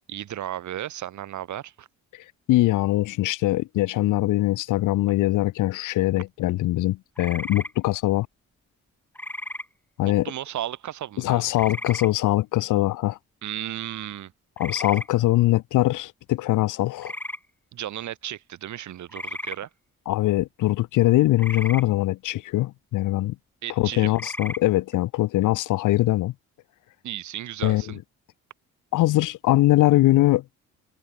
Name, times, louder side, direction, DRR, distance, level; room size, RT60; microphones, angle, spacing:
voice 1, 0.1-1.9 6.2-6.3 10.0-11.4 13.4-14.3 17.7-19.7 23.6-24.1 27.0-28.0, right 12 dB, 70° right, 3.1 m, -34 dB
voice 2, 2.5-8.3 10.0-10.3 11.2-13.2 14.6-17.1 20.1-23.4 23.8-26.3 27.6-27.8 28.9-30.4, left 16 dB, 90° left, 2.1 m, -22 dB
sound 1, 7.2-7.7 9.2-9.6 11.5-12.1 14.6-15.1 17.0-17.4 19.1-19.6 21.4-21.8 24.1-24.6, left 1 dB, 5° left, 1.5 m, -34 dB
cardioid pair, 90°, 30 cm